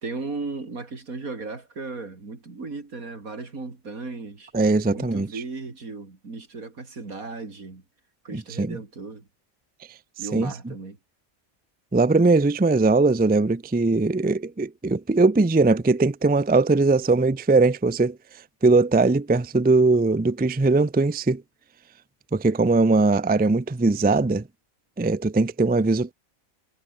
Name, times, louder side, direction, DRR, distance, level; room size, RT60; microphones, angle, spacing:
voice 1, 0.0-4.5 4.9-7.8 8.2-9.3 10.2-11.0, right 3 dB, 90° right, 3.8 m, -36 dB
voice 2, 4.5-5.3 8.3-8.8 10.3-10.7 11.9-18.2 18.6-21.4 22.3-24.5 25.0-26.1, right 3 dB, 15° right, 0.4 m, -20 dB
omnidirectional pair, 1.4 m